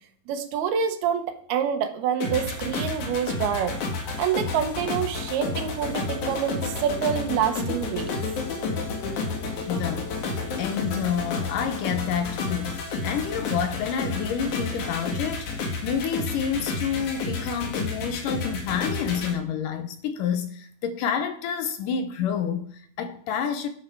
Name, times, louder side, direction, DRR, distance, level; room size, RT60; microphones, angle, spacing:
voice 1, 0.3-3.8 4.2-8.2, right 8 dB, 85° right, 3.2 m, -27 dB
sound 1, 2.2-19.3, left 3 dB, 60° left, 3.0 m, -31 dB
voice 2, 9.7-23.7, left 7 dB, 75° left, 2.2 m, -29 dB
12.5 x 11.0 x 4.6 m
omnidirectional pair, 4.3 m